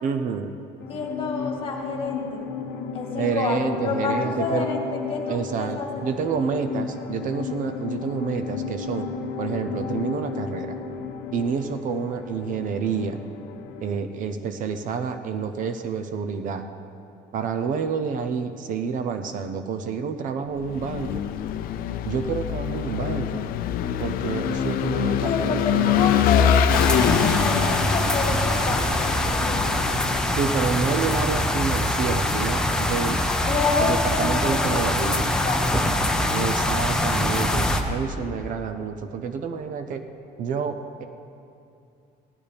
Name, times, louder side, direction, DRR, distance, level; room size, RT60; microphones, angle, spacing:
voice 1, 0.0-0.5 3.2-4.7 5.3-9.1 9.4-10.8 11.3-13.2 13.8-16.7 17.3-21.2 22.0-23.4 24.0-26.1 26.4-26.6 30.3-33.2 33.8-35.2 36.3-40.0 40.4-41.0, right 6 dB, 50° right, 8 dB, 0.7 m, -28 dB
sound 1, 0.8-14.1, left 5 dB, 75° left, 0.8 m, -33 dB
voice 2, 0.9-2.4 2.9-3.6 3.8-4.8 5.1-5.9 25.2-29.8 33.5-35.6, left 4 dB, 30° left, 1 dB, 1.8 m, -28 dB
Vehicle / Engine, 20.6-30.4, left 9 dB, 55° left, 0.5 m, -24 dB
sound 2, 26.7-37.8, left 1 dB, 5° left, 0.7 m, -23 dB
18.0 x 12.0 x 3.5 m, 2.6 s
cardioid pair, 160°, 18 cm